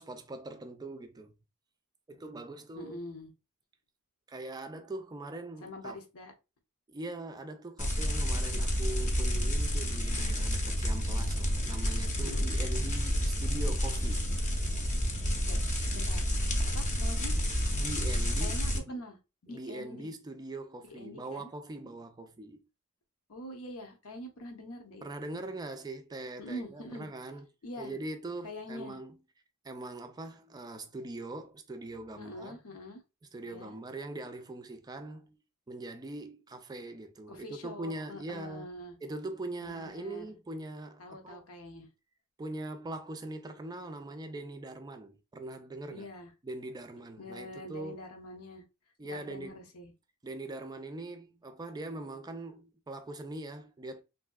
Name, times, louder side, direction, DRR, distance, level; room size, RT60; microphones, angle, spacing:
voice 1, 0.0-1.3 2.1-3.0 4.3-6.0 6.9-14.3 17.7-19.0 19.5-22.6 25.0-27.5 27.8-29.2 29.6-32.6 33.3-35.4 35.7-38.7 39.0-41.4 42.4-46.1 46.4-48.0 49.0-49.6 50.2-54.0, right 2 dB, 20° right, 0.4 m, -42 dB
voice 2, 2.8-3.3 5.6-6.3 12.2-12.5 15.5-15.6 15.9-16.3 16.7-17.4 18.4-19.2 19.4-20.1 20.8-21.5 23.3-25.1 25.3-25.4 26.4-27.1 27.6-27.9 28.4-29.0 32.2-33.0 33.4-33.7 37.3-39.0 39.6-40.4 41.0-41.9 45.9-46.3 47.2-48.6 49.0-49.9, left 1 dB, 70° left, 0.8 m, -44 dB
sound 1, 7.8-18.8, equal, 35° left, 0.7 m, -30 dB
3.4 x 2.7 x 2.2 m
head